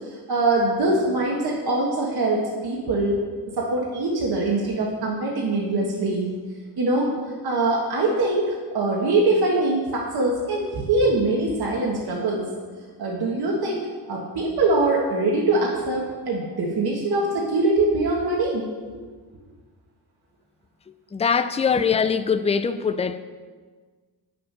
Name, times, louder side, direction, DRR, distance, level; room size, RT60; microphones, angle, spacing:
voice 1, 0.0-6.3 6.8-7.1 7.4-12.4 13.0-18.6, right 2 dB, 60° right, -2 dB, 1.5 m, -23 dB
voice 2, 21.1-23.2, left 6 dB, 15° left, 11 dB, 0.3 m, -22 dB
9.1 x 6.6 x 5.5 m, 1.5 s
wide cardioid pair, 115°, 42 cm